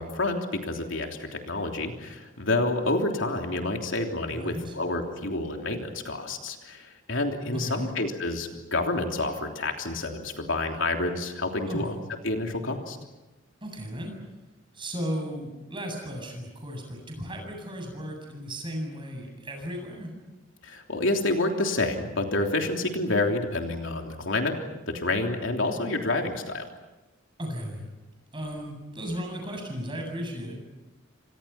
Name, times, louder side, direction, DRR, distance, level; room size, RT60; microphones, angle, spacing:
voice 1, 0.0-11.9 12.2-13.0 20.6-24.5 24.9-26.7, left 2 dB, 75° left, 3 dB, 3.3 m, -28 dB
voice 2, 4.3-4.8 7.5-7.9 11.7-11.9 13.6-14.1 14.7-20.1 27.4-27.9 28.3-30.6, equal, 25° right, 2 dB, 8.0 m, -35 dB
30.0 x 26.0 x 5.9 m, 1.1 s
head